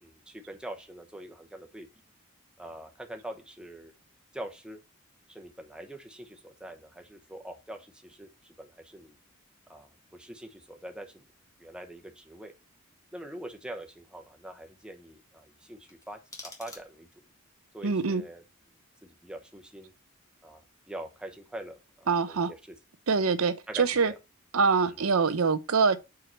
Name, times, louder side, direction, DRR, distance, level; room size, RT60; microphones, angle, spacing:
voice 1, 0.0-1.9 2.6-3.9 4.3-4.8 5.3-9.2 9.7-11.3 11.6-12.5 13.1-17.1 17.7-18.4 19.0-19.9 20.4-22.8 23.7-24.2 24.8-25.0, right 1 dB, 5° right, 0.9 m, -44 dB
sound 1, 15.9-17.3, left 2 dB, 15° left, 1.5 m, -48 dB
voice 2, 17.8-18.2 22.1-22.5 23.1-24.1 24.5-26.0, right 5 dB, 85° right, 0.7 m, -24 dB
4.8 x 4.7 x 6.0 m
head